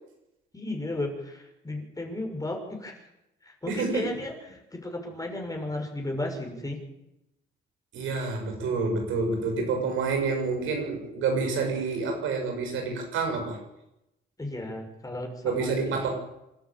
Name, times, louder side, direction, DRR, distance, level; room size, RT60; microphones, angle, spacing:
voice 1, 0.5-3.0 3.4-6.8 14.4-16.1, left 1 dB, 15° left, 3 dB, 6.5 m, -34 dB
voice 2, 3.7-4.1 7.9-13.6 15.4-16.1, right 4 dB, 80° right, 2 dB, 7.1 m, -28 dB
27.0 x 13.0 x 8.8 m, 0.88 s
cardioid pair, 90°, 20 cm